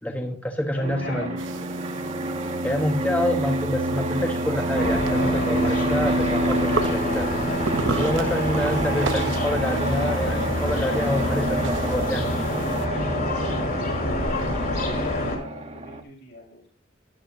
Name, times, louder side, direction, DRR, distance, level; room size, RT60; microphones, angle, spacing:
voice 1, 0.0-1.3 2.6-7.3 8.0-12.6, left 1 dB, 10° left, 2 dB, 1.3 m, -27 dB
voice 2, 0.7-1.7 8.2-8.5 14.0-16.7, left 2 dB, 65° left, 1 dB, 5.9 m, -39 dB
Fixed-wing aircraft airplane, 0.8-16.0, right 1 dB, 35° right, 1.5 m, -28 dB
sound 1, 1.4-12.9, right 5 dB, 80° right, 0.7 m, -36 dB
sound 2, 4.7-15.4, left 1 dB, 50° left, 4.7 m, -27 dB
14.0 x 11.0 x 2.7 m, 0.39 s
head